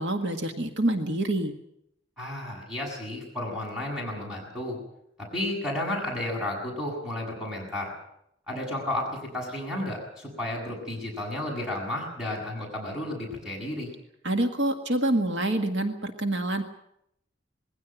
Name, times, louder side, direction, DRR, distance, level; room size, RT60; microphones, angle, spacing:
voice 1, 0.0-1.5 14.2-16.6, right 1 dB, 75° right, 6 dB, 1.9 m, -26 dB
voice 2, 2.2-4.8 5.3-7.9 8.5-9.1 9.3-13.9, left 1 dB, 5° right, -2 dB, 7.7 m, -32 dB
21.0 x 16.5 x 9.3 m, 0.77 s
head